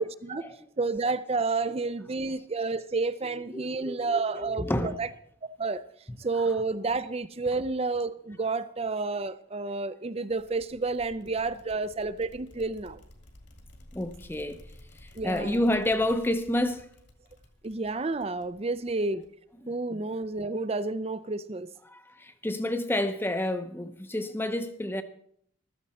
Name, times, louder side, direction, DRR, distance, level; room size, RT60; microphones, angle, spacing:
voice 1, 0.0-0.4 0.8-5.1 5.4-5.8 6.2-13.0 15.2-15.6 17.6-19.3 19.7-21.7, right 3 dB, 30° right, 0.5 m, -30 dB
voice 2, 3.5-5.0 13.9-14.6 14.9-16.9 19.9-20.0 21.8-25.0, left 1 dB, 10° left, 0.7 m, -29 dB
sound 1, 10.3-19.5, left 1 dB, 55° left, 2.2 m, -53 dB
15.0 x 13.5 x 4.2 m
head